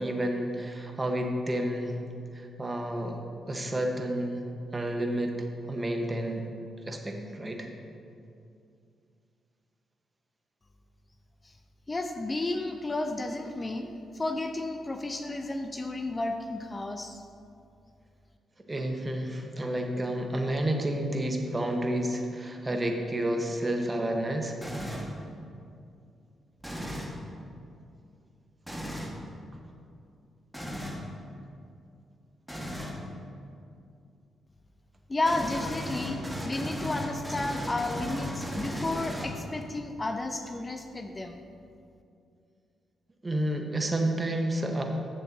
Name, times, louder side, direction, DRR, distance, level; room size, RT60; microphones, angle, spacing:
voice 1, 0.0-2.0 2.3-3.2 3.5-4.4 4.7-5.3 5.7-6.4 6.9-7.7 18.7-24.6 43.2-44.8, right 1 dB, 30° right, 3 dB, 1.2 m, -30 dB
voice 2, 11.9-17.2 35.1-41.4, left 2 dB, 30° left, 6 dB, 0.6 m, -32 dB
sound 1, 24.6-25.2 26.6-27.2 28.7-29.1 30.5-31.0 32.5-33.0 35.2-39.6, equal, ahead, 1.6 m, -36 dB
13.0 x 7.0 x 2.8 m, 2.5 s
hypercardioid pair, 45°, 0 cm